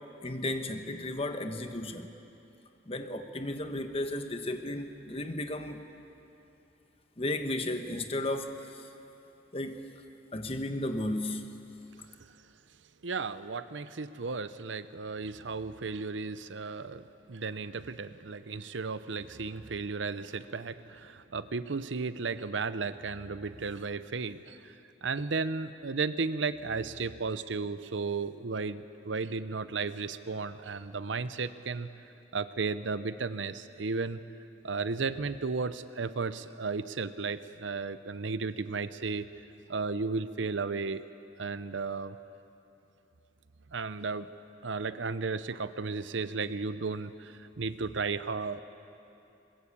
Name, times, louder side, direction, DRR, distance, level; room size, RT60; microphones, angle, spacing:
voice 1, 0.2-2.1 2.9-5.8 7.2-8.9 9.5-9.8 10.3-11.5, left 1 dB, 30° left, 7 dB, 1.1 m, -34 dB
voice 2, 13.0-24.7 25.0-31.9 32.3-34.2 34.6-39.3 39.7-41.0 41.4-42.2 43.7-44.3 44.6-48.6, right 4 dB, 85° right, 13 dB, 0.7 m, -34 dB
22.0 x 21.5 x 8.5 m, 2.9 s
head